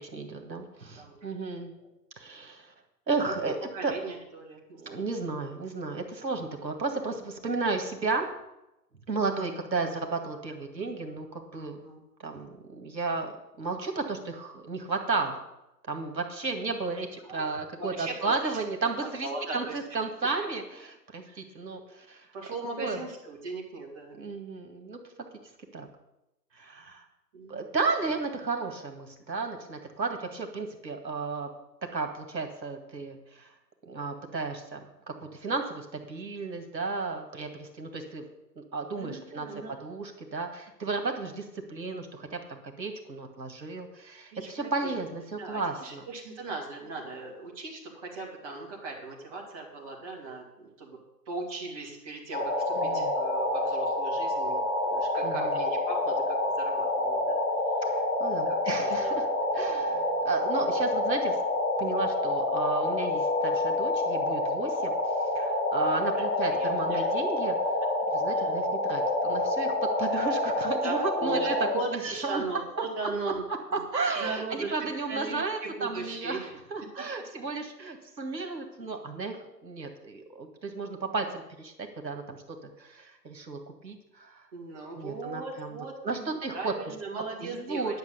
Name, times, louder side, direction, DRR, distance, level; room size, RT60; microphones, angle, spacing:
voice 1, 0.0-1.7 2.2-2.7 3.1-3.6 3.8-3.9 4.8-8.3 9.1-11.8 12.2-15.4 15.9-22.3 22.8-23.0 24.2-25.0 25.7-25.9 26.5-27.0 27.5-31.5 31.9-33.5 33.9-38.2 38.6-46.0 52.7-53.1 55.2-55.5 57.9-59.3 59.5-61.4 61.8-64.9 65.4-67.6 68.1-69.7 70.0-71.5 71.9-72.4 73.9-76.4 76.7-79.4 79.6-81.7 82.0-82.4 82.8-84.4 84.9-85.8 86.0-86.7 87.4-88.0, right 3 dB, 85° right, 4 dB, 2.1 m, -33 dB
voice 2, 3.4-5.0 11.5-12.0 17.2-17.5 17.8-18.9 19.2-20.0 21.2-21.4 22.3-24.3 27.3-27.6 39.0-39.7 44.3-44.9 45.4-51.0 51.3-57.4 58.3-59.2 59.9-60.1 60.6-60.7 66.1-67.1 68.3-68.5 70.8-73.4 73.7-73.8 74.2-74.7 75.1-76.5 84.5-86.3 86.5-88.0, right 3 dB, 20° right, -2 dB, 2.4 m, -38 dB
sound 1, 52.3-71.7, left 2 dB, 70° left, 4.8 m, -28 dB
10.5 x 6.2 x 8.2 m, 0.91 s
figure-of-eight pair, 150°, 50 cm